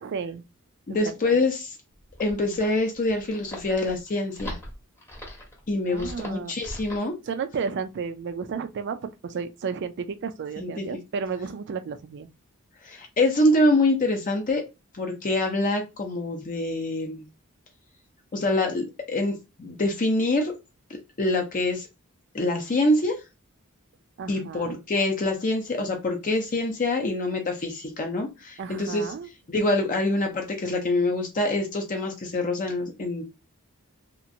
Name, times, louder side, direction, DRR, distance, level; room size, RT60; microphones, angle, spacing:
voice 1, 0.0-0.4 1.0-1.4 5.9-6.5 7.3-12.3 24.2-24.8 28.6-29.3, right 5 dB, 55° right, 0.4 m, -33 dB
voice 2, 0.9-1.7 2.2-4.6 5.7-7.1 10.6-10.9 12.8-14.6 15.0-17.2 18.3-20.5 21.2-21.9 22.3-23.2 24.3-29.1 29.5-33.2, left 2 dB, 40° left, 0.6 m, -25 dB
sound 1, 2.0-7.1, left 1 dB, 10° left, 0.8 m, -41 dB
2.9 x 2.5 x 2.6 m
head